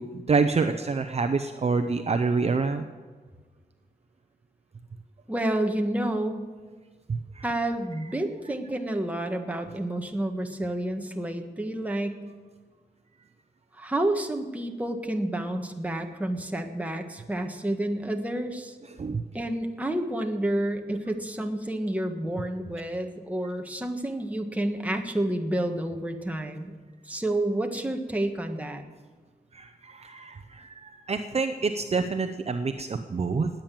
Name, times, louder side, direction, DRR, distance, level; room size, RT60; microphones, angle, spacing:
voice 1, 0.0-2.9 7.1-7.4 19.0-19.2 29.5-33.5, right 4 dB, 40° right, 7 dB, 0.7 m, -27 dB
voice 2, 5.3-6.5 7.4-12.2 13.7-18.8 19.3-26.7 27.0-28.8, right 1 dB, 10° right, 3 dB, 1.5 m, -29 dB
19.5 x 8.9 x 7.5 m, 1.4 s
wide cardioid pair, 140°, 17 cm